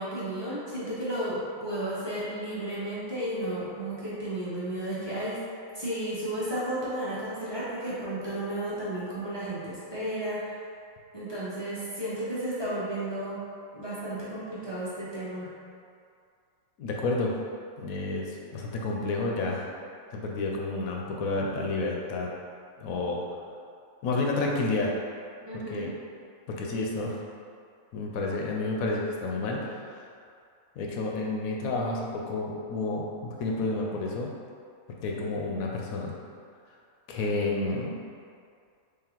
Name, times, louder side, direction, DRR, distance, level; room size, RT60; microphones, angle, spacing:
voice 1, 0.0-5.4 5.7-10.5 11.1-13.4 13.7-15.5 25.4-25.9, right 1 dB, 30° left, -9 dB, 0.5 m, -33 dB
voice 2, 16.8-17.3 17.8-19.7 20.1-22.3 22.8-23.2 24.0-24.9 25.5-25.9 26.5-27.2 27.9-30.0 30.8-34.3 35.0-36.1 37.1-37.9, left 2 dB, 80° left, -1 dB, 1.0 m, -30 dB
3.8 x 3.3 x 2.9 m, 2.3 s
omnidirectional pair, 1.5 m